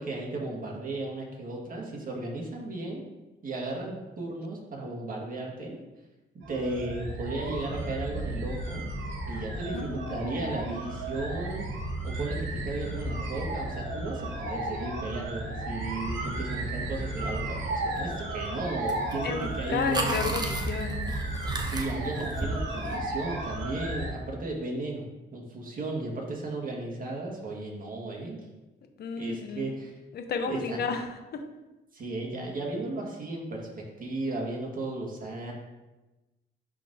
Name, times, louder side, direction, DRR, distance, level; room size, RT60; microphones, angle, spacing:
voice 1, 0.0-3.1 3.4-5.8 6.5-8.8 9.3-11.7 12.0-20.3 21.6-25.1 25.3-28.4 29.2-29.9 30.5-30.8 31.9-33.7 34.0-35.5, right 2 dB, 45° right, -1 dB, 1.8 m, -35 dB
sound 1, 6.4-24.1, right 2 dB, 75° right, 1.3 m, -34 dB
voice 2, 9.7-10.7 19.2-21.1 29.0-29.7 30.1-31.4, left 5 dB, 55° left, 5 dB, 0.8 m, -33 dB
sound 2, 18.9-19.2 19.4-23.0, right 2 dB, 20° right, 0.8 m, -34 dB
10.5 x 3.7 x 2.8 m, 1.1 s
cardioid pair, 90°, 20 cm